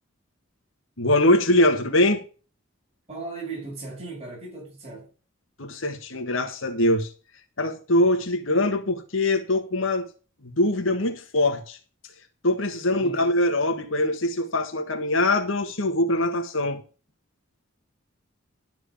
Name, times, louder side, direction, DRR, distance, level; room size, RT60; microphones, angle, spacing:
voice 1, 1.0-2.2 5.6-7.1 7.6-10.1 10.4-11.8 12.4-16.8, left 1 dB, 80° left, 1.6 m, -23 dB
voice 2, 3.1-5.1 12.9-13.3, right 3 dB, 30° right, 6.9 m, -37 dB
12.0 x 4.7 x 7.3 m
head